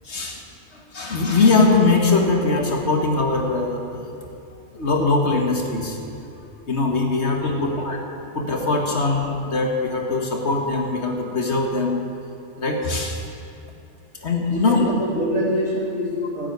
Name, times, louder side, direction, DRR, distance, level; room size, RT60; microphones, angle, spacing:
voice 1, 0.0-0.4 0.7-4.1 4.7-6.0 6.7-8.0 8.3-12.0 12.6-13.2 14.2-14.8, left 3 dB, 55° left, 1 dB, 1.9 m, -21 dB
voice 2, 7.5-7.9 14.5-16.5, left 1 dB, 80° right, -5 dB, 3.7 m, -25 dB
12.5 x 8.3 x 9.3 m, 2.7 s
omnidirectional pair, 1.4 m